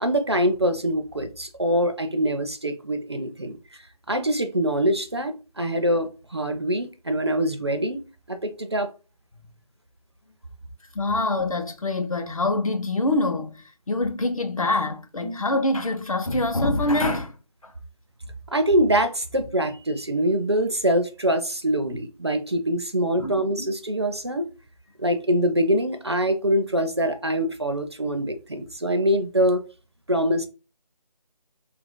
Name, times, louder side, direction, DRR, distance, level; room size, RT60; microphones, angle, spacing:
voice 1, 0.0-3.6 4.1-8.0 8.3-8.9 15.2-15.4 18.5-24.5 25.0-29.6 30.1-30.5, equal, 40° right, 0.4 m, -24 dB
voice 2, 10.9-17.3 17.6-17.7 23.2-23.7, left 2 dB, 55° left, 0.7 m, -25 dB
2.8 x 2.5 x 3.7 m
figure-of-eight pair, 160°, 21 cm